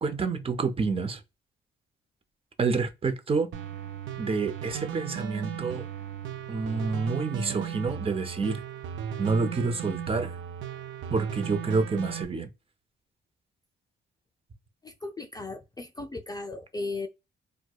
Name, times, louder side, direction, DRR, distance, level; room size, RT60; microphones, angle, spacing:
voice 1, 0.0-1.2 2.6-3.5 4.2-5.9 6.5-8.6 9.2-10.4 11.1-12.5, right 4 dB, 30° right, 0.7 m, -28 dB
sound 1, 3.5-12.2, right 9 dB, 75° right, 0.6 m, -37 dB
voice 2, 14.8-17.1, left 3 dB, 20° left, 0.4 m, -36 dB
4.5 x 2.2 x 2.3 m
cardioid pair, 90°, 20 cm